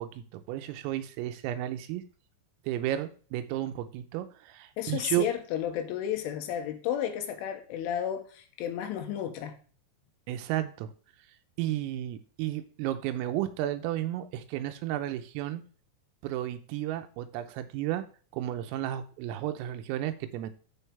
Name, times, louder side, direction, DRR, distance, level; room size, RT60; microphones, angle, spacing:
voice 1, 0.0-2.0 2.7-5.3 10.3-10.9 11.6-15.6 16.2-18.0 18.3-20.5, right 13 dB, 85° right, 9 dB, 3.5 m, -33 dB
voice 2, 4.8-9.6, left 10 dB, 80° left, 5 dB, 3.3 m, -32 dB
13.5 x 4.9 x 3.4 m, 0.40 s
omnidirectional pair, 5.9 m